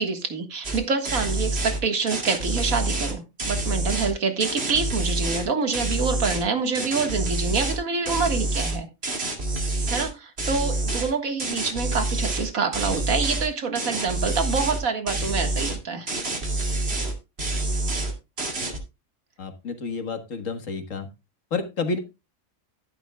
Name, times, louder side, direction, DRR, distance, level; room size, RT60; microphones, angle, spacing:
voice 1, 0.0-8.9 9.9-16.1, right 4 dB, 80° right, 6 dB, 2.1 m, -26 dB
sound 1, 0.6-1.8 2.1-4.1 4.4-5.5 5.7-6.4 6.7-7.8 8.1-10.1 10.4-11.1 11.4-12.5 12.7-13.5 13.8-14.8 15.1-15.8 16.1-17.1 17.4-18.1 18.4-18.8, right 2 dB, 50° right, 2.6 m, -27 dB
voice 2, 19.4-21.1 21.5-22.0, left 4 dB, 70° left, 7 dB, 1.8 m, -30 dB
12.5 x 11.0 x 2.3 m, 0.26 s
omnidirectional pair, 1.4 m